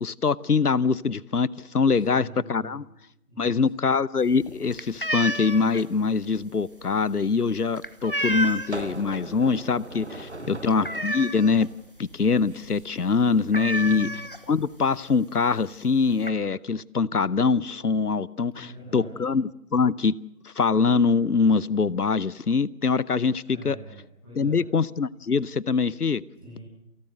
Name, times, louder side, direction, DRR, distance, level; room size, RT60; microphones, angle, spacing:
voice 1, 0.0-2.9 3.4-11.7 12.0-14.1 14.5-20.1 20.4-23.8 24.4-26.2, left 5 dB, 75° left, 0.8 m, -24 dB
voice 2, 1.9-2.8 3.2-3.6 10.2-10.6 13.8-14.1 18.5-19.2 23.4-24.6 26.3-26.6, right 1 dB, 5° left, 7.9 m, -45 dB
sound 1, 4.2-8.9 9.3-9.6 9.9-10.0 10.4-11.7 12.1-12.2 12.5-12.7 13.0-13.1 13.5-14.7 15.5-15.6 15.9-16.3, equal, 35° left, 1.0 m, -31 dB
sound 2, 7.2-7.3 8.3-11.1 12.4-12.9, right 2 dB, 45° right, 1.1 m, -39 dB
28.0 x 12.5 x 7.7 m
figure-of-eight pair, 170°, 46 cm